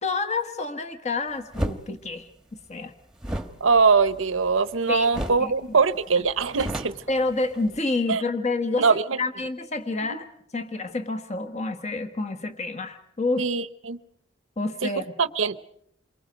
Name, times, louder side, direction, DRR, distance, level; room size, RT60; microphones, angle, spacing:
voice 1, 0.0-2.3 2.7-2.9 4.9-5.1 5.4-5.5 6.2-6.3 7.1-10.2 10.5-13.5 14.6-15.1, left 3 dB, 35° left, 1.3 m, -28 dB
sound 1, 1.5-1.8 3.2-4.8 5.1-5.5 5.8-5.9 6.2-7.8, right 1 dB, 5° right, 1.2 m, -32 dB
voice 2, 3.6-7.0 8.1-8.2 8.8-9.2 10.0-10.2 13.4-14.0 14.8-14.9 15.2-15.6, right 5 dB, 85° right, 0.8 m, -22 dB
28.5 x 23.0 x 5.2 m
head